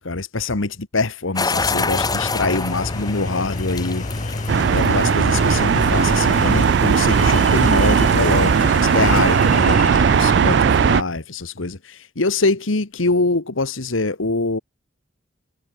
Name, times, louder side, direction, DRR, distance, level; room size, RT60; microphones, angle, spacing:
voice 1, 0.0-14.6, left 3 dB, 80° left, 1.5 m, -24 dB
sound 1, 1.4-9.6, left 3 dB, 20° left, 1.9 m, -30 dB
sound 2, 1.6-11.0, left 2 dB, 40° left, 0.9 m, -28 dB
sound 3, 4.5-11.0, right 7 dB, 55° right, 0.3 m, -17 dB
head